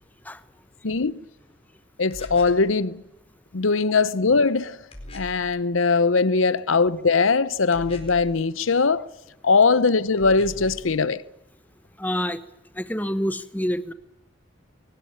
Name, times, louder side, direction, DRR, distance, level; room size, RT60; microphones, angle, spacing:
voice 1, 0.8-1.2 2.0-3.0 3.5-4.8 5.1-9.1 9.4-11.2, left 4 dB, 90° left, 0.8 m, -21 dB
sound 1, 2.1-2.7 4.9-5.5 7.7-8.4 10.2-10.9, left 1 dB, 30° left, 4.3 m, -40 dB
voice 2, 12.0-12.4 12.7-13.9, equal, 10° left, 1.1 m, -27 dB
23.0 x 18.5 x 8.9 m
head